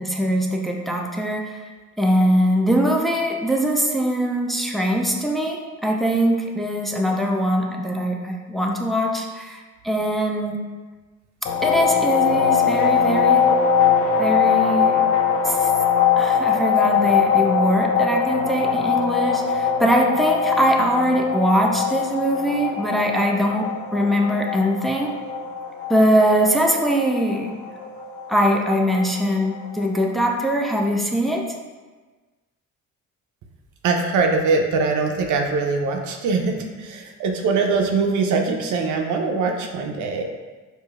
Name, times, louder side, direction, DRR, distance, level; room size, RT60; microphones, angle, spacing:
voice 1, 0.0-1.6 2.0-10.6 11.6-13.5 14.2-15.0 15.4-15.7 16.2-25.1 25.9-27.5 28.3-31.5, equal, ahead, 0 dB, 0.4 m, -22 dB
sound 1, 11.4-30.0, left 6 dB, 70° left, 0.6 m, -22 dB
voice 2, 33.8-40.2, right 4 dB, 75° right, 3 dB, 0.5 m, -22 dB
4.7 x 2.6 x 2.4 m, 1.3 s
cardioid pair, 90°, 30 cm